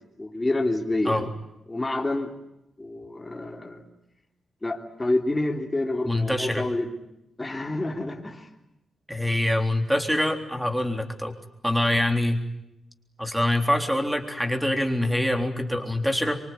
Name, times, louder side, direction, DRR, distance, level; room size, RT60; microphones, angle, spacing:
voice 1, 0.2-1.3 1.7-2.3 2.8-3.8 4.6-6.9 7.4-8.5, left 2 dB, 15° left, 2 dB, 3.2 m, -28 dB
voice 2, 6.0-6.6 9.1-11.3 11.6-12.4 13.2-16.4, left 1 dB, ahead, 5 dB, 3.7 m, -24 dB
25.5 x 24.5 x 9.5 m, 0.87 s
cardioid pair, 110°, 0 cm